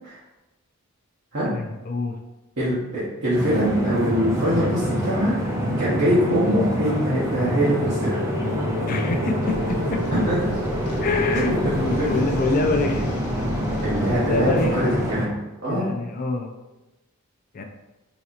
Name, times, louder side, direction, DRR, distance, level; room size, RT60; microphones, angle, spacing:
voice 1, 1.5-2.2 8.9-10.0 11.0-11.6 11.8-13.1 14.2-14.9 15.6-16.5 17.5-17.6, left 3 dB, 40° left, 4 dB, 0.4 m, -25 dB
voice 2, 2.6-5.4 5.8-8.2 10.1-10.4 11.3-12.1 13.8-15.9, equal, 55° right, -11 dB, 0.9 m, -23 dB
sound 1, 3.3-15.3, equal, 15° right, 0.6 m, -26 dB
sound 2, 7.5-15.8, left 1 dB, 80° right, 1.3 m, -34 dB
sound 3, 9.4-15.1, left 1 dB, 85° left, 0.7 m, -35 dB
4.1 x 2.8 x 2.4 m, 0.99 s
head